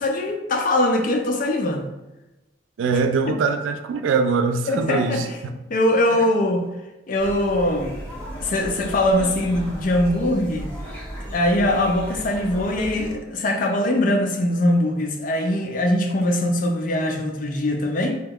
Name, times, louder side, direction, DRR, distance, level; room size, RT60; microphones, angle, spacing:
voice 1, 0.0-1.9 4.7-5.4 5.7-6.7 7.1-7.9 8.4-10.7 11.3-18.2, left 1 dB, 45° left, 3 dB, 0.4 m, -22 dB
voice 2, 2.8-5.3, right 4 dB, 85° right, 7 dB, 0.3 m, -22 dB
sound 1, 7.2-13.1, equal, 10° left, 1.5 m, -35 dB
2.9 x 2.2 x 3.5 m, 1.0 s
head